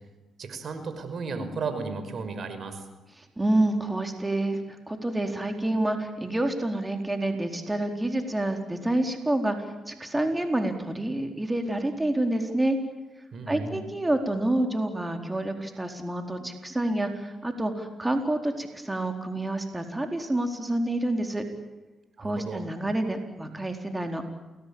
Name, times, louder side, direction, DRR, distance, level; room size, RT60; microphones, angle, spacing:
voice 1, 0.4-2.8 13.3-13.8 22.2-22.6, right 4 dB, 60° right, 10 dB, 5.5 m, -34 dB
voice 2, 3.2-12.8 13.5-21.4 22.2-24.2, right 1 dB, 15° right, 5 dB, 4.3 m, -28 dB
30.0 x 20.0 x 8.8 m, 1.1 s
supercardioid pair, 65°, 0 cm